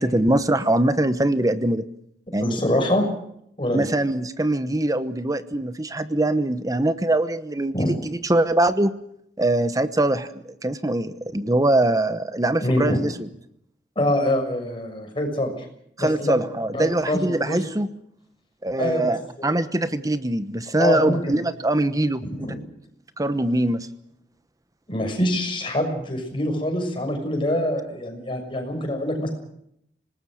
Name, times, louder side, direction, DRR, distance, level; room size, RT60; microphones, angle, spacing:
voice 1, 0.0-1.8 2.3-2.6 3.7-8.9 9.4-13.3 16.0-17.9 18.6-22.2 23.2-23.9, right 1 dB, 20° right, 12 dB, 1.0 m, -22 dB
voice 2, 2.4-3.0 3.6-3.8 7.7-8.0 12.6-13.0 13.9-15.5 16.0-16.4 16.7-17.6 18.8-19.1 19.4-19.5 20.8-21.4 22.2-22.6 24.9-29.3, left 1 dB, 30° left, 3 dB, 6.6 m, -25 dB
26.0 x 19.5 x 6.5 m, 0.72 s
head